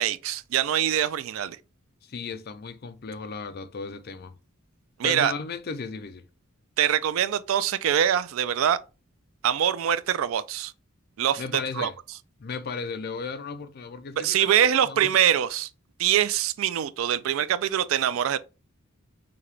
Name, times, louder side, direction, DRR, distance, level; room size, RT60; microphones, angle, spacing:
voice 1, 0.0-1.6 5.0-5.3 6.8-8.8 9.4-10.7 11.2-11.4 11.8-11.9 14.2-15.7 16.0-18.4, right 10 dB, 70° right, 0.3 m, -24 dB
voice 2, 2.0-4.4 5.0-6.2 11.4-11.9 12.4-15.2, left 5 dB, 50° left, 0.5 m, -35 dB
5.0 x 2.8 x 3.2 m
head